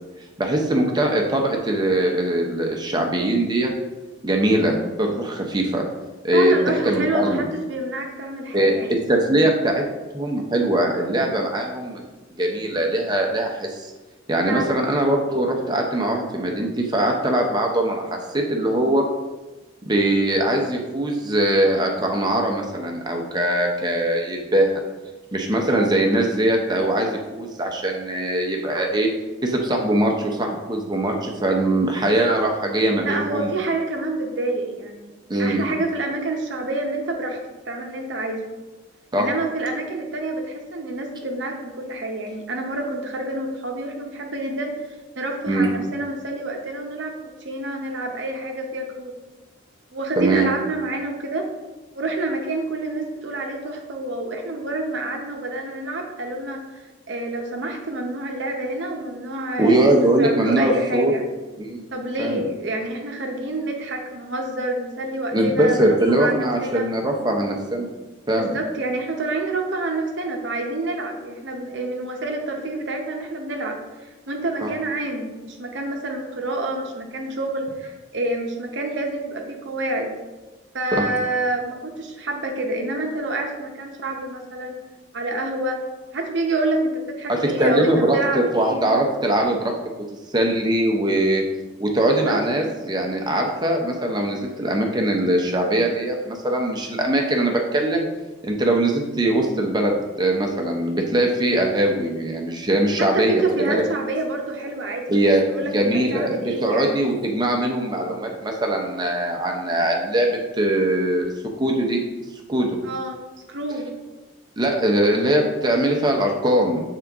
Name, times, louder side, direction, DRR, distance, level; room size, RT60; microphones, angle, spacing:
voice 1, 0.4-3.7 4.2-5.8 6.2-7.5 8.5-9.8 10.1-12.0 12.4-13.9 14.3-19.0 19.9-24.8 25.3-29.1 29.4-33.5 35.3-35.6 39.1-39.3 45.5-45.7 50.2-50.5 59.6-61.1 61.6-61.8 62.2-62.4 65.3-67.9 68.3-68.5 74.6-74.7 80.9-81.0 87.3-89.7 90.3-91.4 91.8-98.1 98.4-103.8 105.1-111.3 111.6-112.0 112.5-112.8 114.6-116.8, right 1 dB, 20° right, 1 dB, 0.6 m, -21 dB
voice 2, 6.3-9.0 14.5-14.8 25.7-25.9 33.0-35.1 35.4-37.4 37.7-38.4 39.2-44.8 45.2-47.2 47.4-49.1 49.9-51.5 51.9-61.2 61.9-66.8 68.4-80.1 80.7-84.8 85.1-85.8 86.1-88.8 92.0-92.4 103.0-105.2 105.4-107.0 112.8-113.2 113.5-113.9, right 2 dB, 60° right, 2 dB, 0.8 m, -28 dB
7.4 x 3.7 x 3.5 m, 1.2 s
head